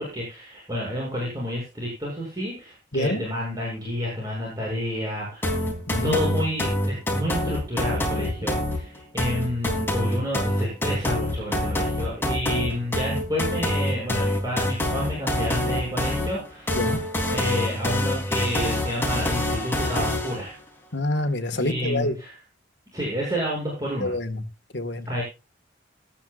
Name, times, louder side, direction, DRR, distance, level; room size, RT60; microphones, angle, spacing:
voice 1, 0.0-5.6 6.0-16.9 17.3-20.5 21.5-22.3 22.9-24.1 25.1-25.2, equal, 20° right, -5 dB, 7.6 m, -30 dB
voice 2, 2.9-3.3 5.9-6.2 16.7-17.0 20.9-22.1 24.0-24.4 24.7-25.1, left 1 dB, 65° left, 8 dB, 1.9 m, -26 dB
sound 1, 5.4-20.4, left 1 dB, 10° left, 3.8 m, -26 dB
18.0 x 13.0 x 2.6 m, 0.29 s
head